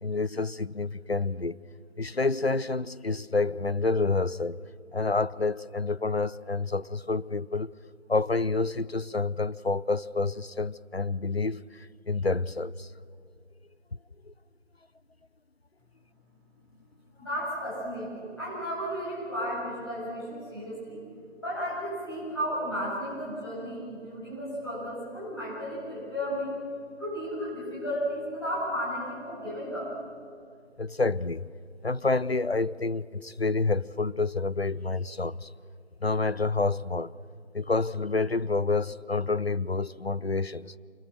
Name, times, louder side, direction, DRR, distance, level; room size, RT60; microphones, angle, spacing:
voice 1, 0.0-1.6 2.0-4.6 4.9-7.7 8.1-12.9 14.3-14.4 30.8-31.5 31.8-35.5 36.0-37.1 37.5-40.7, left 3 dB, 55° left, 0.6 m, -28 dB
voice 2, 17.2-21.0 21.4-26.6 27.0-29.9, equal, 20° left, 8.0 m, -33 dB
28.5 x 27.0 x 6.5 m
figure-of-eight pair, 175°, 37 cm